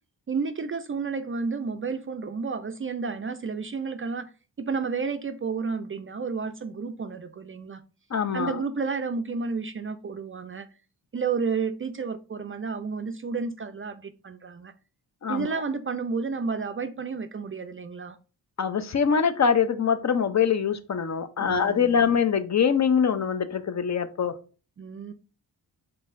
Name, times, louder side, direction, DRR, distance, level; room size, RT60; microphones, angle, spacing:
voice 1, 0.3-4.3 4.6-7.8 8.3-10.7 11.1-14.7 15.3-18.2 21.4-22.1 24.8-25.1, right 5 dB, 30° right, 0.4 m, -31 dB
voice 2, 8.1-8.5 15.2-15.6 18.6-24.3, left 7 dB, 40° left, 0.6 m, -24 dB
4.6 x 3.6 x 2.5 m
cardioid pair, 50°, 43 cm